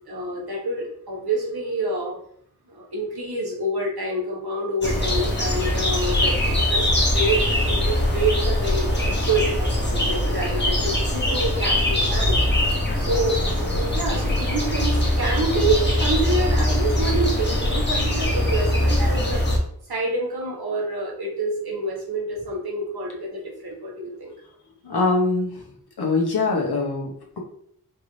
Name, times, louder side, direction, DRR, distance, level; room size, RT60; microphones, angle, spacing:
voice 1, 0.1-2.2 2.7-12.3 12.9-19.5 19.9-24.3, right 2 dB, 80° right, -2 dB, 1.3 m, -27 dB
sound 1, 4.8-19.6, left 1 dB, 30° left, 0.9 m, -22 dB
voice 2, 24.8-25.7 26.0-27.4, left 3 dB, 85° left, 0 dB, 1.0 m, -23 dB
4.5 x 2.6 x 3.2 m, 0.66 s
wide cardioid pair, 75°, 38 cm